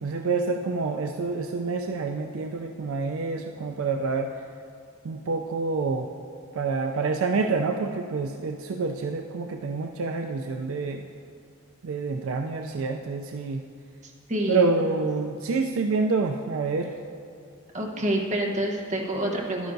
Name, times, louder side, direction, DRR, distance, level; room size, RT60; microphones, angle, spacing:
voice 1, 0.0-4.3 5.0-6.1 6.5-11.1 11.8-13.6 14.5-16.9, right 4 dB, 65° right, 4 dB, 0.4 m, -27 dB
voice 2, 14.3-14.7 17.7-19.7, right 1 dB, 35° right, 0 dB, 1.0 m, -27 dB
11.5 x 9.7 x 2.6 m, 2.4 s
head